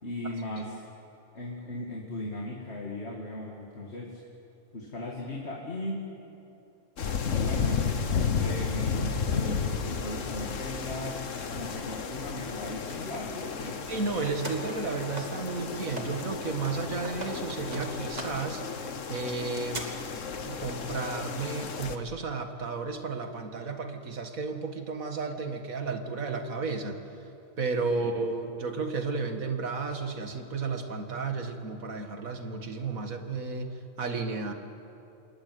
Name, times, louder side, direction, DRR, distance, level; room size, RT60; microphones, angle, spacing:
voice 1, 0.0-0.9 1.3-4.2 4.7-6.1 7.3-11.2 11.5-13.8 27.9-28.1, left 1 dB, 50° left, -1 dB, 2.7 m, -37 dB
sound 1, 7.0-22.0, left 6 dB, 65° left, 1.6 m, -33 dB
sound 2, 13.7-16.3 16.5-19.8, right 1 dB, 30° right, 2.8 m, -42 dB
voice 2, 13.9-19.8 20.4-27.0 27.6-34.5, right 4 dB, 80° right, 6 dB, 2.3 m, -33 dB
26.0 x 21.5 x 9.5 m, 2.9 s
omnidirectional pair, 1.4 m